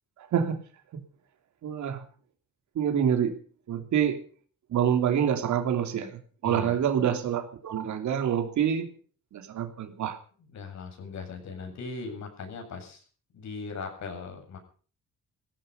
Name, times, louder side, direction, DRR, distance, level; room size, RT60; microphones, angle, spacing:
voice 1, 1.6-2.0 2.7-3.3 3.7-4.2 4.7-8.9 9.3-10.2, right 9 dB, 70° right, 7 dB, 3.1 m, -26 dB
voice 2, 6.4-6.8 10.4-13.0 13.3-14.6, left 4 dB, 65° left, 4 dB, 7.9 m, -39 dB
17.0 x 15.5 x 5.4 m, 0.41 s
cardioid pair, 90°, 30 cm